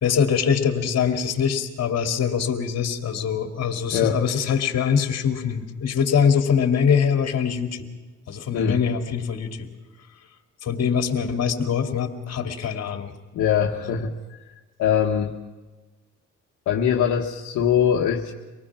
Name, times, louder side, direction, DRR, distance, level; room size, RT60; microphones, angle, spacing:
voice 1, 0.0-7.8 8.3-9.7 10.6-13.1, left 7 dB, 55° left, 6 dB, 2.4 m, -23 dB
voice 2, 3.9-4.2 8.5-8.8 13.3-14.1 14.8-15.3 16.7-18.3, left 8 dB, 75° left, 0 dB, 1.4 m, -22 dB
25.0 x 19.0 x 6.0 m, 1.2 s
cardioid pair, 90°, 30 cm